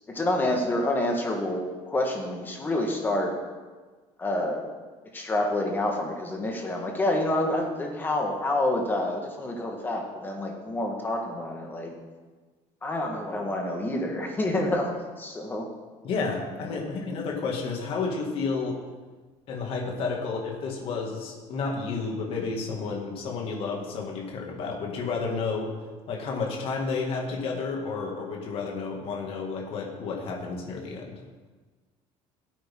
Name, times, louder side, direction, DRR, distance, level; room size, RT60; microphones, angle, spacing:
voice 1, 0.0-1.6 1.9-3.3 4.2-4.6 5.1-11.9 12.8-15.7, left 1 dB, 15° left, 1 dB, 1.5 m, -28 dB
voice 2, 16.0-18.8 19.5-25.7 26.1-31.2, left 4 dB, 50° left, 0 dB, 2.2 m, -31 dB
16.5 x 8.8 x 3.7 m, 1.4 s
cardioid pair, 170°, 12 cm